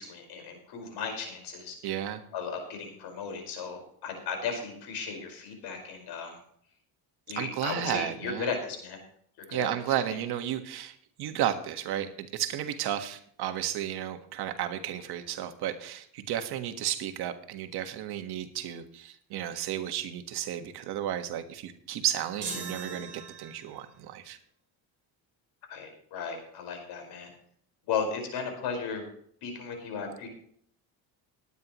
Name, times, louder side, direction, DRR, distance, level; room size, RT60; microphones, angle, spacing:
voice 1, 0.0-1.7 2.3-6.4 7.3-9.0 9.4-9.7 25.7-27.3 27.9-29.1 29.4-30.3, left 5 dB, 75° left, 3 dB, 5.0 m, -35 dB
voice 2, 1.8-2.2 7.4-8.5 9.5-24.4, right 11 dB, 70° right, 7 dB, 1.6 m, -33 dB
sound 1, 22.4-23.9, right 4 dB, 30° right, 5.6 m, -39 dB
19.5 x 9.8 x 3.1 m, 0.64 s
cardioid pair, 120°, 40 cm